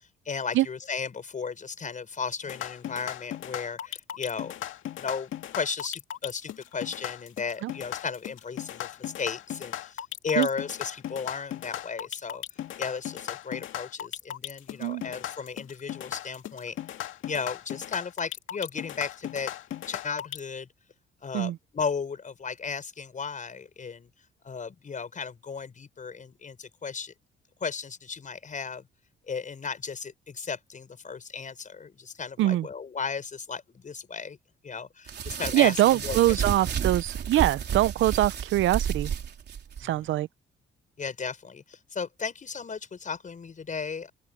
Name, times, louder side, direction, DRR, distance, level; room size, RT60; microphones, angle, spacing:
voice 1, 0.2-4.5 5.0-12.4 12.8-16.8 17.3-19.5 19.9-20.7 21.2-24.1 24.4-27.1 27.6-28.9 29.3-34.4 34.6-36.4 39.8-40.1 41.0-44.1, left 5 dB, 40° left, 6.0 m, -35 dB
sound 1, 2.4-20.4, left 12 dB, 80° left, 2.2 m, -37 dB
sound 2, 35.1-39.8, right 8 dB, 55° right, 3.9 m, -31 dB
voice 2, 35.5-39.1 39.8-40.3, right 15 dB, 75° right, 0.6 m, -23 dB
open air
cardioid pair, 90°, 20 cm